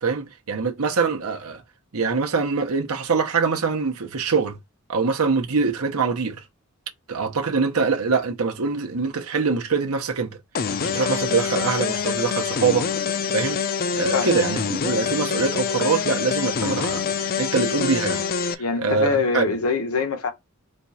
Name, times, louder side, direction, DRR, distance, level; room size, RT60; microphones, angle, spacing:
voice 1, 0.0-1.6 1.9-4.6 4.9-6.4 7.1-10.4 10.8-13.6 13.9-18.2 18.5-19.4, right 4 dB, 80° right, 0.9 m, -24 dB
sound 1, 10.5-18.5, left 6 dB, 40° left, 0.4 m, -25 dB
voice 2, 18.6-20.3, left 4 dB, 80° left, 0.9 m, -23 dB
4.4 x 2.4 x 4.1 m
head